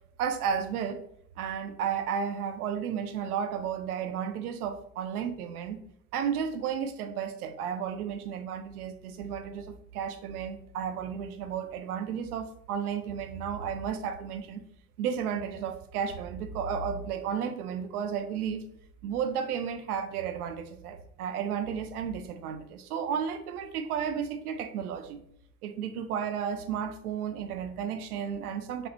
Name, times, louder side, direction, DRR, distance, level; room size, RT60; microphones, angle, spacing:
voice 1, 0.2-1.0 1.4-5.8 6.1-14.6 15.0-18.6 19.0-25.2 25.6-28.9, right 7 dB, 80° right, 8 dB, 0.7 m, -33 dB
4.2 x 2.4 x 4.4 m, 0.71 s
hypercardioid pair, 65°, 44 cm